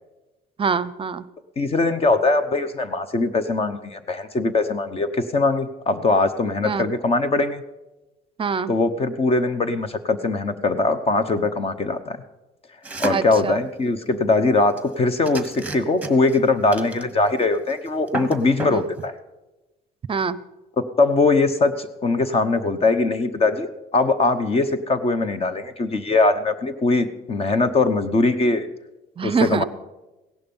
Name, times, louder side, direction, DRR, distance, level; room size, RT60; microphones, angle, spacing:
voice 1, 0.6-1.2 6.6-6.9 8.4-8.7 13.1-13.6 18.7-18.8 20.1-20.4 29.2-29.6, right 5 dB, 30° right, 17 dB, 0.6 m, -24 dB
voice 2, 1.6-7.6 8.7-12.2 13.0-19.1 20.8-28.7 29.2-29.6, left 3 dB, 35° left, 11 dB, 1.0 m, -21 dB
sound 1, 12.8-13.4 14.8-14.9 15.3-16.4 16.7-17.4 17.7-17.8 18.1-18.8, right 2 dB, 10° right, 1.3 m, -30 dB
17.0 x 11.5 x 5.5 m, 1.0 s
cardioid pair, 110°, 17 cm